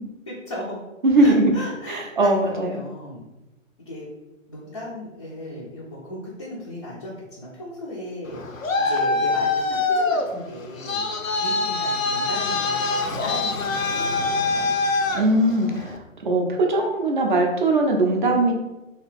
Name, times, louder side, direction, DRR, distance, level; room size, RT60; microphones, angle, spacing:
voice 1, 0.3-0.8 1.2-3.2 3.9-4.1 4.5-14.7, left 1 dB, 25° left, -7 dB, 0.4 m, -36 dB
voice 2, 1.0-1.5 1.9-2.8 15.1-15.9 16.2-18.5, right 2 dB, 40° right, 1 dB, 0.5 m, -20 dB
Traffic noise roadway noise, 8.3-16.0, left 3 dB, 75° left, 0.6 m, -24 dB
2.8 x 2.8 x 3.4 m, 1.0 s
figure-of-eight pair, 130°, 40 cm